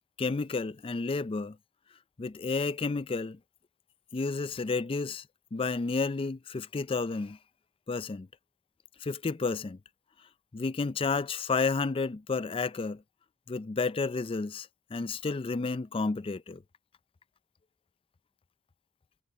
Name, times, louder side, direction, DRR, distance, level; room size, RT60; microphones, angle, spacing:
voice 1, 0.2-1.6 2.2-3.4 4.1-5.2 5.5-7.4 7.9-8.3 9.0-9.8 10.5-13.0 13.5-16.6, left 4 dB, 25° left, 0.4 m, -31 dB
head